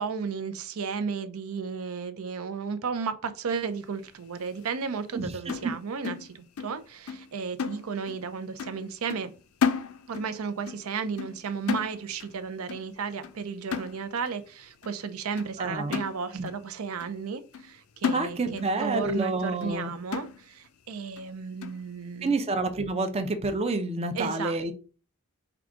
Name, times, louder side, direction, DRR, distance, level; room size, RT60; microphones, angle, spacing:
voice 1, 0.0-9.3 10.1-22.3 24.1-24.7, right 5 dB, 80° right, 0.5 m, -34 dB
voice 2, 5.1-5.7 15.6-16.0 16.3-16.5 18.1-19.9 22.2-24.7, right 2 dB, 30° right, 0.5 m, -29 dB
sound 1, 5.5-6.8 7.1-7.3 7.6-8.3 8.6-8.8 9.1-10.4 10.7-10.9 11.2-12.4 12.7-12.9 13.2-13.4 13.7-14.4 14.8-14.9 15.4-15.5 15.9-16.6 17.0-17.1 17.5-17.7 18.0-18.8 19.1-19.2 19.6-19.7 20.1-20.7 21.2-21.3 21.6-21.8, left 6 dB, 75° left, 0.4 m, -33 dB
4.7 x 2.3 x 3.7 m
head